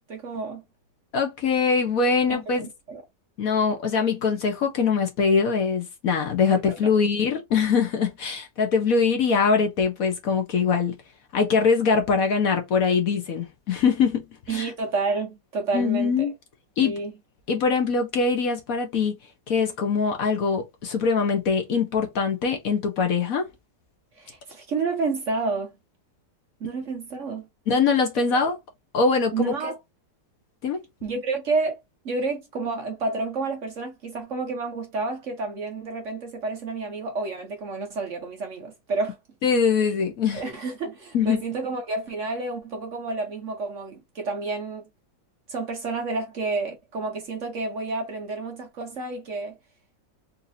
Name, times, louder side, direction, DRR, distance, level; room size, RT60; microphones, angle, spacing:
voice 1, 0.1-0.6 2.3-3.0 6.5-6.9 14.5-16.3 16.8-17.1 24.2-25.7 26.6-27.4 29.3-29.8 31.0-31.8 32.0-39.2 40.3-44.8 45.5-49.6, right 3 dB, 50° right, 1.1 m, -30 dB
voice 2, 1.1-2.6 3.4-10.9 11.3-14.7 15.7-16.3 16.8-17.0 17.5-19.1 19.5-23.5 27.7-28.6 28.9-29.5 30.6-30.8 39.4-40.4 41.1-41.4, left 5 dB, 60° left, 1.1 m, -23 dB
4.0 x 2.7 x 2.7 m
omnidirectional pair, 1.9 m